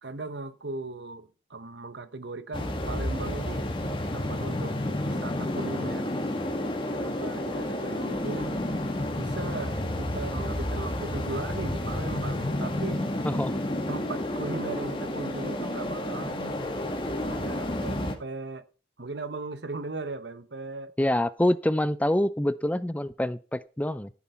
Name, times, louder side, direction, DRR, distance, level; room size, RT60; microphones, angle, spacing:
voice 1, 0.0-3.7 4.1-4.8 5.0-6.1 6.9-8.6 9.1-13.0 13.9-16.6 17.3-18.7 19.0-20.9, right 3 dB, 75° right, 1.2 m, -38 dB
sound 1, 2.5-18.1, left 1 dB, 30° left, 2.0 m, -30 dB
voice 2, 13.2-13.6 21.0-24.1, left 1 dB, 10° left, 0.5 m, -26 dB
14.5 x 7.2 x 4.4 m
head